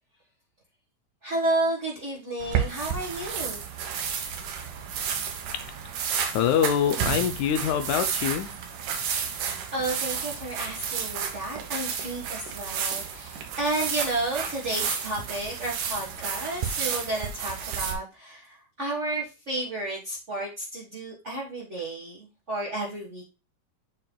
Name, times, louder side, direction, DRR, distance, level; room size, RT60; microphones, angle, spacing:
voice 1, 1.2-3.6 9.7-23.2, right 2 dB, 85° right, -3 dB, 0.6 m, -32 dB
sound 1, 2.4-17.9, right 7 dB, 70° right, 2.7 m, -31 dB
voice 2, 6.3-8.5, left 9 dB, 75° left, 9 dB, 1.9 m, -24 dB
7.6 x 6.7 x 2.2 m, 0.29 s
omnidirectional pair, 3.9 m